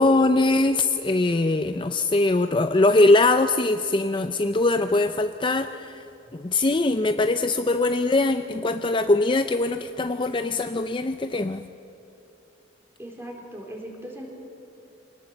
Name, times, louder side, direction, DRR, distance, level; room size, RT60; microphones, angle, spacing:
voice 1, 0.0-6.0 6.3-11.6, left 2 dB, 25° left, 9 dB, 0.5 m, -22 dB
voice 2, 6.3-6.7 13.0-14.3, equal, 15° right, 0 dB, 4.1 m, -39 dB
26.0 x 19.0 x 7.8 m, 2.8 s
head